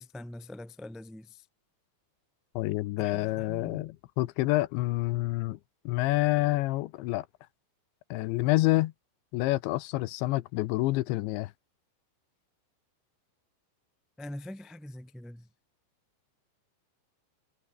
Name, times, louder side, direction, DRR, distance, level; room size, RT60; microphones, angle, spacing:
voice 1, 0.0-1.4 3.0-3.8 14.2-15.5, left 1 dB, ahead, 0.5 m, -44 dB
voice 2, 2.6-5.6 5.9-7.3 8.1-8.9 9.3-11.5, left 18 dB, 80° left, 3.1 m, -28 dB
omnidirectional pair, 5.3 m